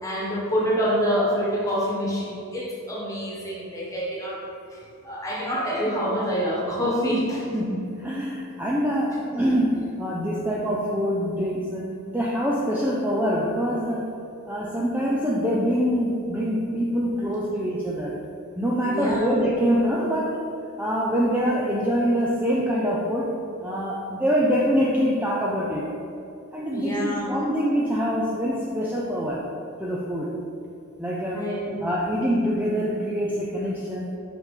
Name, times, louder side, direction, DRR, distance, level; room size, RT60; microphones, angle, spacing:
voice 1, 0.0-4.4 4.7-7.4 18.8-19.3 26.7-27.3 31.3-31.8, equal, 15° left, -5 dB, 1.4 m, -26 dB
voice 2, 7.5-14.0 14.5-18.2 18.6-20.4 20.8-23.3 23.6-25.9 26.5-29.5 29.8-30.4 31.0-31.5 31.8-34.1, equal, 10° right, -5 dB, 0.5 m, -25 dB
5.8 x 5.6 x 3.8 m, 2.6 s
head